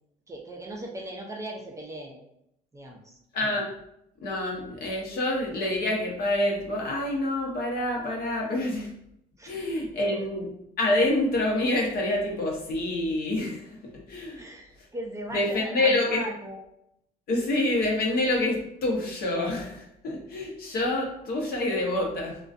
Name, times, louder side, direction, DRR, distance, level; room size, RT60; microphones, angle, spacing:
voice 1, 0.3-2.2 2.7-3.1 9.4-9.7 10.1-10.2 14.3-16.6, right 1 dB, 20° right, 1 dB, 0.4 m, -38 dB
voice 2, 3.3-3.7 4.2-8.9 9.5-10.5 10.8-13.7 14.1-14.4 15.3-16.2 17.3-22.4, left 1 dB, 65° left, -1 dB, 0.7 m, -27 dB
2.5 x 2.2 x 2.3 m, 0.77 s
cardioid pair, 110°, 17 cm